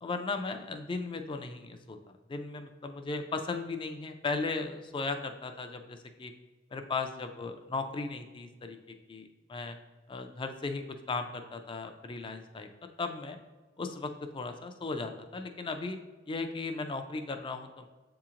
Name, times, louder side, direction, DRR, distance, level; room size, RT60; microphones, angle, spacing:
voice 1, 0.0-2.0 2.3-6.3 6.7-8.8 9.1-9.7 10.1-12.7 13.0-13.4 13.8-16.0 16.3-17.9, left 3 dB, 25° left, 6 dB, 0.3 m, -36 dB
7.6 x 2.8 x 2.5 m, 1.3 s
head